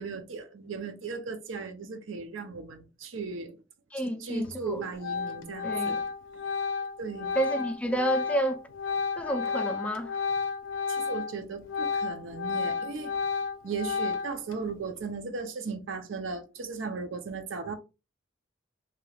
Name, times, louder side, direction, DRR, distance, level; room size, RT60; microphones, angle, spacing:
voice 1, 0.0-3.5 4.0-6.0 7.0-7.4 10.9-13.1 13.6-17.7, right 4 dB, 90° right, 0.6 m, -37 dB
voice 2, 3.9-4.8 5.6-6.0 7.3-8.6 9.2-10.2, right 1 dB, 5° left, 0.3 m, -30 dB
Organ, 4.4-4.7 5.0-11.3 11.6-14.5, left 5 dB, 85° left, 0.5 m, -32 dB
3.2 x 2.9 x 2.3 m
head